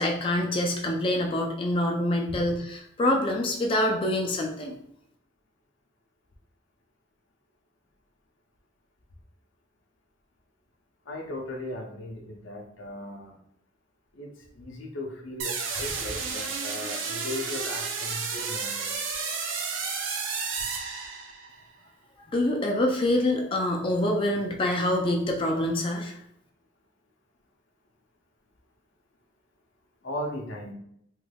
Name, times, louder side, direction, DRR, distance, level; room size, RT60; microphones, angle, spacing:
voice 1, 0.0-4.7 22.3-26.1, left 1 dB, 25° left, 1 dB, 0.4 m, -26 dB
voice 2, 11.1-13.4 14.1-18.9 30.0-30.7, left 1 dB, 70° left, 1 dB, 0.6 m, -37 dB
sound 1, 15.4-21.6, right 5 dB, 75° right, 0.5 m, -32 dB
3.3 x 3.0 x 2.2 m, 0.74 s
head